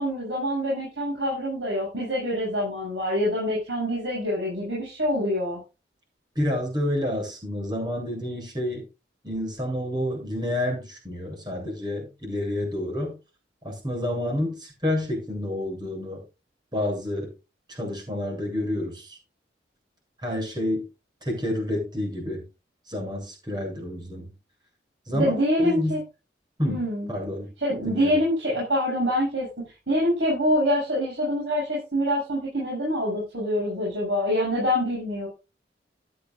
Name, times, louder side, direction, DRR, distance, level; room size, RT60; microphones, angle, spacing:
voice 1, 0.0-5.6 25.1-26.0 26.7-27.1 27.6-35.3, equal, 85° right, -5 dB, 7.6 m, -25 dB
voice 2, 6.4-8.8 9.2-13.1 13.6-16.2 16.7-17.3 17.7-19.2 20.2-20.8 21.2-22.4 22.9-24.3 25.1-26.0 26.6-26.8 27.1-27.5 27.9-28.2, left 1 dB, 25° right, 1 dB, 7.9 m, -29 dB
15.0 x 12.0 x 2.5 m, 0.28 s
head